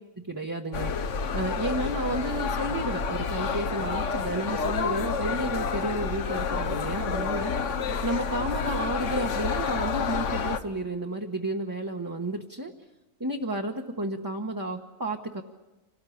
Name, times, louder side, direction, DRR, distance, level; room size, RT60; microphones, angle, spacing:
voice 1, 0.2-7.5 8.0-12.7 13.2-15.4, right 1 dB, 15° right, 0 dB, 1.2 m, -32 dB
sound 1, 0.7-10.6, left 5 dB, 65° left, 1.3 m, -29 dB
26.5 x 18.5 x 8.6 m, 1.1 s
omnidirectional pair, 1.4 m